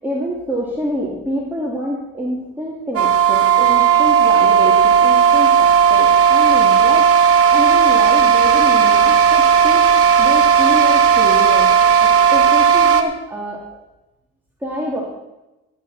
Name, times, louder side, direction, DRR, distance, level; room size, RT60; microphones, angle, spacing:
voice 1, 0.0-7.1 7.5-9.9 10.2-11.7 12.0-13.6 14.6-15.0, equal, 5° right, -5 dB, 2.5 m, -26 dB
sound 1, 2.9-13.0, right 7 dB, 50° right, 1.4 m, -13 dB
16.0 x 9.3 x 4.2 m, 0.98 s
cardioid pair, 90°, 30 cm